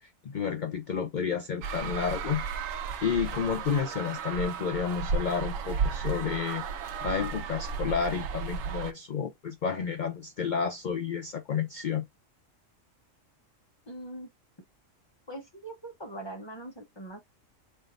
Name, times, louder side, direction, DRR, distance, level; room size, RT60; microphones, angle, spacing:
voice 1, 0.0-2.4 3.0-6.7 7.0-12.1, left 6 dB, 65° left, 0.4 m, -31 dB
sound 1, 1.6-8.9, right 6 dB, 80° right, 1.0 m, -34 dB
voice 2, 13.9-14.3 15.3-17.2, right 1 dB, 25° left, 0.7 m, -41 dB
4.0 x 3.5 x 2.5 m
omnidirectional pair, 1.4 m